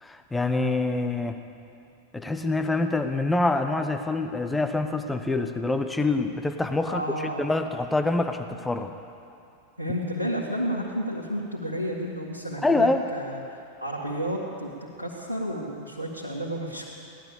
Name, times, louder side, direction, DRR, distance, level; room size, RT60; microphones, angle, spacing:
voice 1, 0.0-1.4 2.1-8.9 12.6-13.0, left 2 dB, 10° left, 7 dB, 0.9 m, -26 dB
voice 2, 6.9-7.5 9.8-14.7 15.0-16.8, equal, 85° right, -6 dB, 1.9 m, -31 dB
17.0 x 12.0 x 6.9 m, 2.6 s
figure-of-eight pair, 90°, 0 cm